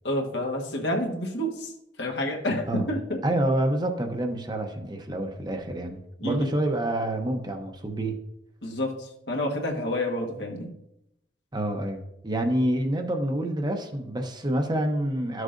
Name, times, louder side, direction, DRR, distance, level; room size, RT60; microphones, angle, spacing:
voice 1, 0.0-1.7 2.0-3.2 6.2-6.5 8.6-10.7, left 1 dB, 75° left, 0 dB, 1.4 m, -29 dB
voice 2, 3.2-8.2 11.5-15.4, right 1 dB, 25° right, 5 dB, 0.7 m, -27 dB
12.5 x 6.4 x 2.6 m, 0.85 s
head